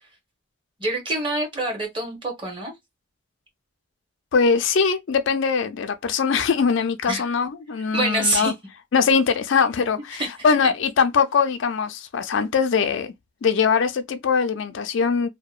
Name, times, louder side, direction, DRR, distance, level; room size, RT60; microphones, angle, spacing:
voice 1, 0.8-2.7 7.1-7.3 7.9-8.5 10.2-10.3, right 2 dB, 25° right, 0.9 m, -25 dB
voice 2, 4.3-8.5 8.9-13.1 13.4-15.3, left 5 dB, 65° left, 0.4 m, -21 dB
2.8 x 2.1 x 2.3 m
head